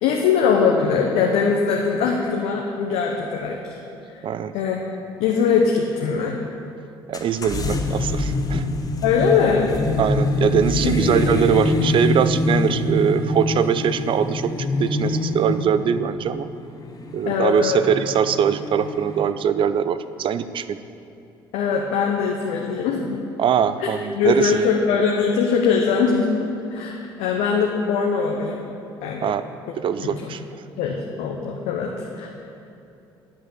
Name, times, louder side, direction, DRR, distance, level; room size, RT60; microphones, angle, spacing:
voice 1, 0.0-3.8 4.5-4.8 5.2-6.3 9.0-9.7 10.8-10.9 17.3-17.8 21.5-23.2 23.8-23.9 24.1-26.4 26.7-28.6 29.0-29.3 30.0-30.3 30.8-32.3, left 6 dB, 65° left, 0 dB, 0.8 m, -21 dB
voice 2, 4.2-4.5 7.1-8.6 10.0-14.5 14.8-16.5 17.1-20.8 23.4-24.6 29.2-29.5 29.8-30.4, right 8 dB, 45° right, 13 dB, 0.5 m, -22 dB
sound 1, 7.1-19.3, left 2 dB, 30° left, 1.1 m, -25 dB
10.0 x 5.6 x 6.6 m, 2.7 s
hypercardioid pair, 55°, 12 cm